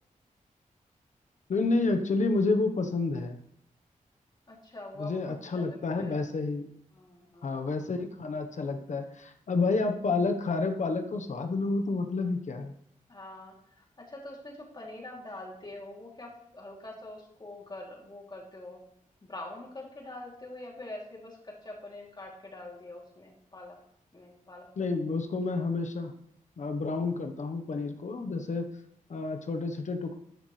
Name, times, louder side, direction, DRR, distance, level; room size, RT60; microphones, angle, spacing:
voice 1, 1.5-3.4 5.0-6.7 7.4-12.7 24.8-26.1 26.6-28.7 29.1-30.1, left 3 dB, 60° left, 6 dB, 1.1 m, -29 dB
voice 2, 4.5-6.2 6.9-7.7 13.1-18.8 19.2-23.8 24.1-25.1, left 2 dB, 30° left, -2 dB, 3.0 m, -45 dB
13.5 x 11.0 x 3.3 m, 0.72 s
wide cardioid pair, 120°, 14 cm